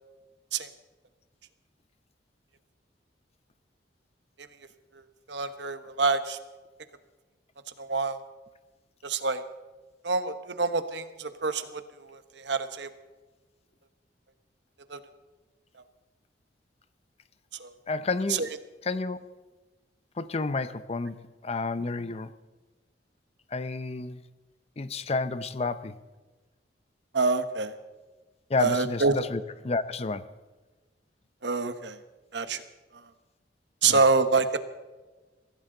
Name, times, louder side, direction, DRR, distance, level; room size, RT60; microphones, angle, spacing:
voice 1, 5.3-6.4 7.8-8.2 9.0-9.4 10.0-12.9 14.9-15.0 17.6-17.7 18.3-18.5 27.1-27.7 28.6-29.2 31.4-32.0 32.3-32.6 33.8-34.6, right 4 dB, 70° right, 10 dB, 1.1 m, -26 dB
voice 2, 17.9-18.5 18.8-19.2 20.2-22.3 23.5-24.2 24.8-26.0 28.5-30.3 33.8-34.0, left 3 dB, 35° left, 13 dB, 0.6 m, -30 dB
23.5 x 15.5 x 3.9 m, 1.2 s
head